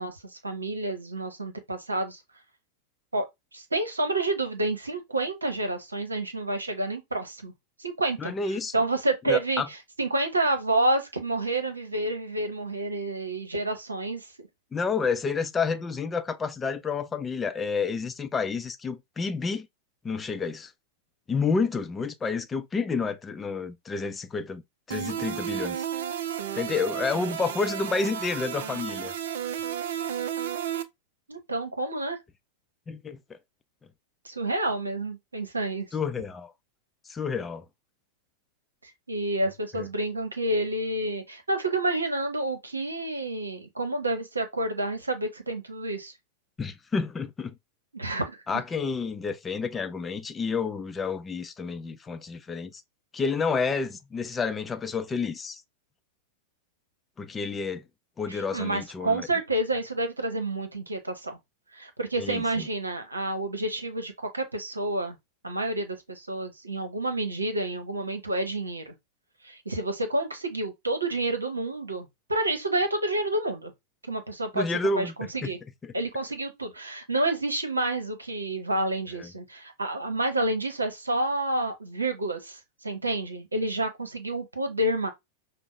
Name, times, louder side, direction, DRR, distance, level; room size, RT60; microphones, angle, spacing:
voice 1, 0.0-2.2 3.1-3.3 3.5-7.5 7.8-8.3 8.7-9.6 10.0-14.5 31.3-32.2 34.2-35.9 38.8-46.1 47.9-48.4 58.3-61.4 61.7-65.2 65.4-68.9 69.4-73.7 74.1-74.6 75.0-75.6 75.9-85.1, right 2 dB, 80° right, 0.9 m, -29 dB
voice 2, 8.2-8.7 9.3-9.7 14.7-19.7 20.0-20.7 21.3-24.6 24.9-25.8 26.5-29.1 32.9-33.4 35.9-36.5 37.1-37.6 39.7-39.9 46.6-47.5 48.5-52.8 53.1-55.6 57.2-57.8 58.2-59.3 62.2-62.7 74.5-75.5 75.8-75.9 79.2-79.3, left 4 dB, 15° left, 0.5 m, -30 dB
sound 1, 24.9-30.8, right 9 dB, 60° right, 0.4 m, -32 dB
5.2 x 2.1 x 3.2 m
figure-of-eight pair, 90°, 0 cm